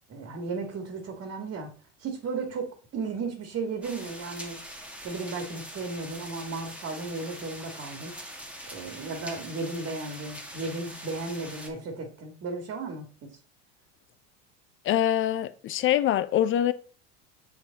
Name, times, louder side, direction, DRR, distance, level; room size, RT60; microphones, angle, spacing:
voice 1, 0.1-1.7 2.0-2.7 2.9-4.6 5.0-8.2 8.7-13.4, right 3 dB, 40° right, 1.9 m, -35 dB
sound 1, 3.8-11.7, right 1 dB, 5° right, 1.7 m, -43 dB
voice 2, 14.9-16.7, left 11 dB, 35° left, 0.5 m, -24 dB
6.8 x 4.1 x 4.0 m
supercardioid pair, 105°, 37 cm